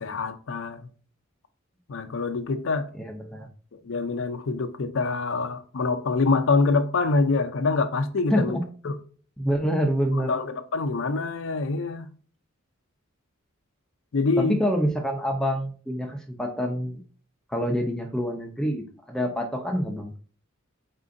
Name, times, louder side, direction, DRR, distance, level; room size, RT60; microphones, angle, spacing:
voice 1, 0.0-0.9 1.9-2.9 3.8-8.6 8.8-9.0 10.1-12.1 14.1-14.6, left 3 dB, 65° left, 0.5 m, -25 dB
voice 2, 2.9-3.5 8.3-8.6 9.4-10.3 14.4-17.0 17.5-20.2, equal, 5° left, 0.5 m, -26 dB
4.3 x 3.7 x 2.5 m
head